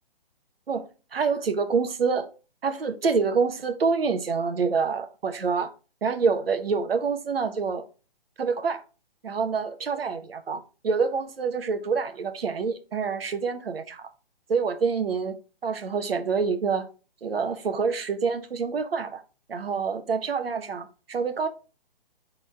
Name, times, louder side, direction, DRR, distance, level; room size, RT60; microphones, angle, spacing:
voice 1, 0.7-2.3 2.6-5.7 6.0-7.8 8.4-8.8 9.2-14.1 14.5-15.4 15.6-16.9 17.2-19.2 19.5-21.5, right 5 dB, 70° right, 1.3 m, -27 dB
8.5 x 3.9 x 3.6 m
figure-of-eight pair, 135°, 30 cm